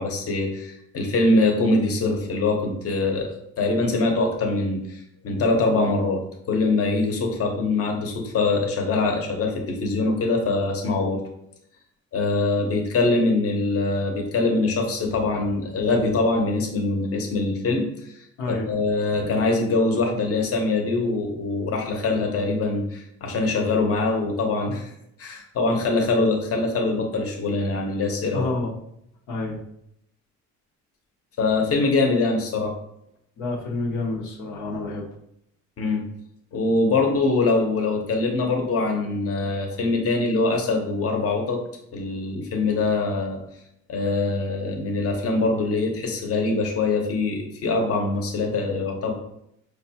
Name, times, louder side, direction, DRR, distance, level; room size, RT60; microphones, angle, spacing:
voice 1, 0.0-3.3 3.6-11.2 12.1-24.9 25.2-28.5 31.4-32.7 35.8-36.0 36.5-41.6 41.9-43.4 43.9-49.1, left 3 dB, 50° left, 2 dB, 0.8 m, -23 dB
voice 2, 18.4-18.7 28.3-28.7 29.3-29.6 33.4-35.1, left 2 dB, 90° left, -2 dB, 0.8 m, -28 dB
4.7 x 2.3 x 2.8 m, 0.76 s
cardioid pair, 90°, 30 cm